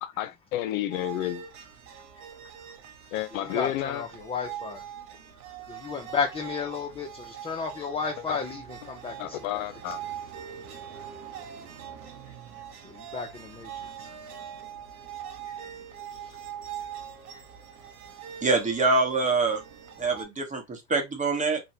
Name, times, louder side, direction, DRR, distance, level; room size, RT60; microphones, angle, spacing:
voice 1, 0.0-1.4 3.1-4.1 8.3-8.4 9.2-10.0, left 13 dB, 70° left, 0.5 m, -31 dB
sound 1, 0.9-20.2, right 9 dB, 80° right, 0.8 m, -42 dB
voice 2, 3.3-4.8 5.7-9.6 12.8-14.1 15.5-15.7 16.2-16.4, left 5 dB, 15° left, 0.5 m, -33 dB
voice 3, 18.4-19.6 20.0-21.6, right 3 dB, 15° right, 0.9 m, -25 dB
2.9 x 2.2 x 2.6 m
hypercardioid pair, 80°, 43 cm